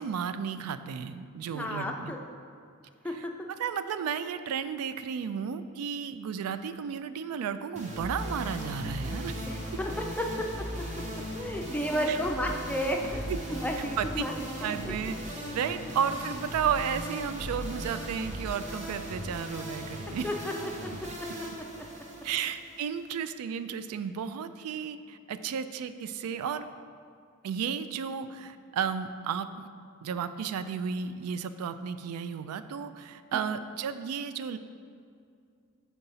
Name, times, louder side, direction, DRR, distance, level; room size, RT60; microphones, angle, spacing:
voice 1, 0.0-2.1 3.2-9.5 12.1-12.2 13.3-13.4 14.0-14.2 14.6-20.3 22.2-26.7 27.4-29.7 30.0-34.6, right 7 dB, 90° right, 14 dB, 0.3 m, -33 dB
voice 2, 1.5-2.2 3.0-3.5 9.4-10.8 11.3-13.3 13.6-14.3 14.6-14.7 20.2-20.5 20.8-20.9 33.3-33.4, equal, 5° left, 1 dB, 0.4 m, -32 dB
sound 1, 7.8-23.2, equal, 35° right, 0.8 m, -38 dB
4.6 x 3.9 x 5.6 m, 2.3 s
head